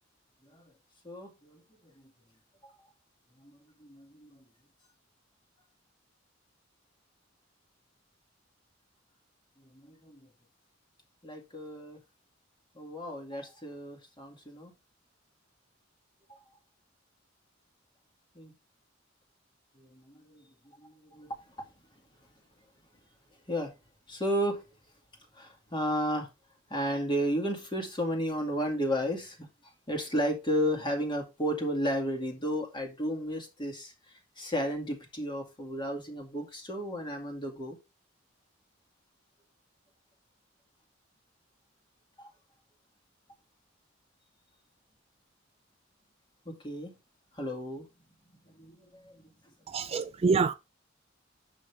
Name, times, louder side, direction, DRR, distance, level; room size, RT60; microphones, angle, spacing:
voice 1, 1.0-2.1 2.6-2.7 3.4-4.4 9.6-10.3 11.2-12.0 12.7-14.7 16.3-16.4 18.3-18.5 19.8-21.4 23.5-23.7 24.1-24.6 25.3-26.3 26.7-37.8 42.2-42.3 46.5-47.0 47.3-47.9 48.5-49.3 49.8-50.1, equal, 25° left, 2.2 m, -34 dB
voice 2, 49.7-50.5, right 4 dB, 30° right, 0.3 m, -26 dB
8.9 x 6.5 x 3.4 m
head